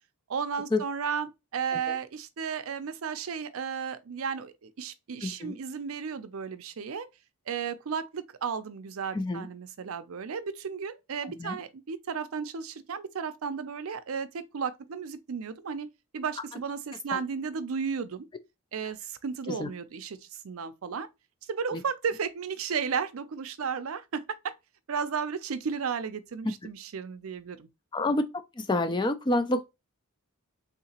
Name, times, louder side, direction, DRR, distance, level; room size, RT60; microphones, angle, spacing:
voice 1, 0.3-7.1 7.5-15.9 16.1-18.3 18.7-20.2 20.4-21.1 21.5-24.5 24.9-27.7, right 6 dB, 85° right, 0.5 m, -34 dB
voice 2, 5.2-5.6 9.1-9.5 11.2-11.6 17.1-17.2 19.5-19.7 21.7-21.8 26.4-26.5 27.9-28.2 28.5-29.7, left 2 dB, 20° left, 0.4 m, -28 dB
3.6 x 2.8 x 2.8 m
head